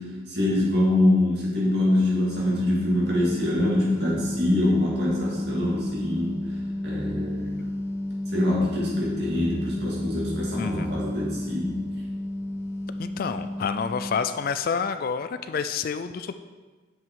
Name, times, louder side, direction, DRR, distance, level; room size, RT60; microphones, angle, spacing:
voice 1, 0.0-6.3 6.8-7.7 8.3-11.8, left 1 dB, 55° right, -5 dB, 2.4 m, -24 dB
sound 1, 2.3-14.1, left 1 dB, 65° left, 1.5 m, -32 dB
voice 2, 10.6-11.0 13.0-16.3, left 6 dB, 45° left, 11 dB, 0.3 m, -29 dB
7.3 x 5.9 x 4.6 m, 1.3 s
head